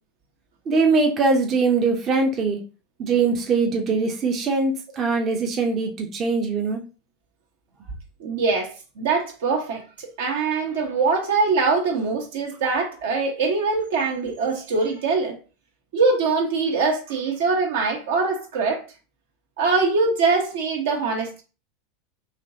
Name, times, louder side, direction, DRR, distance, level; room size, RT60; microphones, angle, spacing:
voice 1, 0.7-2.6 3.0-6.8, right 4 dB, 35° right, 0.7 m, -22 dB
voice 2, 8.2-15.4 15.9-18.8 19.6-21.4, right 4 dB, 70° right, 0.9 m, -23 dB
3.3 x 2.9 x 2.7 m
hypercardioid pair, 90°, 0 cm